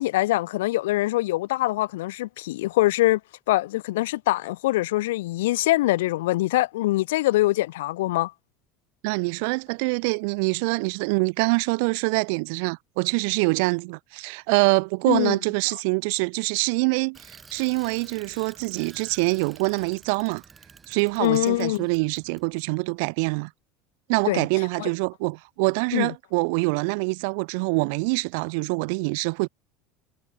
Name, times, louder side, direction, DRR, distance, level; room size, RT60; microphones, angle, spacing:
voice 1, 0.0-3.2 3.5-8.3 15.1-15.4 21.2-21.9 24.3-24.5 24.8-24.9 25.9-26.1, left 17 dB, 60° left, 0.6 m, -23 dB
voice 2, 9.0-20.4 20.9-23.5 24.1-29.5, right 32 dB, 55° right, 0.6 m, -25 dB
Bicycle, 17.1-22.6, right 5 dB, 20° right, 4.0 m, -50 dB
figure-of-eight pair, 70°, 0 cm